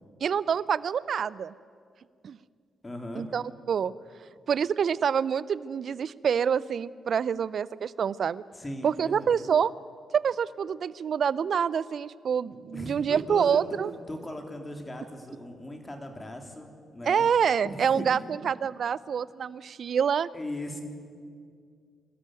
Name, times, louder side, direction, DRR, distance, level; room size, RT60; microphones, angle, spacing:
voice 1, 0.2-1.5 2.2-2.4 3.2-3.9 4.5-8.4 8.8-9.7 10.1-13.9 17.1-20.3, right 7 dB, 60° right, 20 dB, 0.5 m, -26 dB
voice 2, 2.8-3.3 8.5-9.4 12.7-13.6 14.1-17.3 17.6-18.2 20.3-20.8, left 1 dB, 25° left, 4 dB, 3.5 m, -38 dB
22.5 x 14.0 x 9.3 m, 2.2 s
hypercardioid pair, 40°, 0 cm